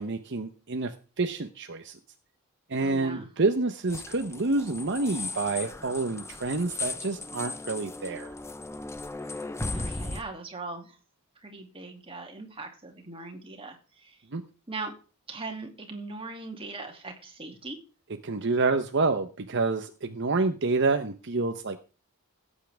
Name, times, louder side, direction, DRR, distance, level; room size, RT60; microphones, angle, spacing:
voice 1, 0.0-2.0 2.7-8.3 14.3-14.4 18.2-21.8, right 3 dB, 55° right, 7 dB, 0.9 m, -28 dB
voice 2, 2.8-3.3 9.3-9.4 9.7-11.0 11.4-14.2 14.7-14.9 15.3-17.8, right 3 dB, 25° right, 3 dB, 2.5 m, -40 dB
sound 1, 3.9-10.2, left 3 dB, 10° left, 0.7 m, -37 dB
17.0 x 8.4 x 3.5 m, 0.35 s
head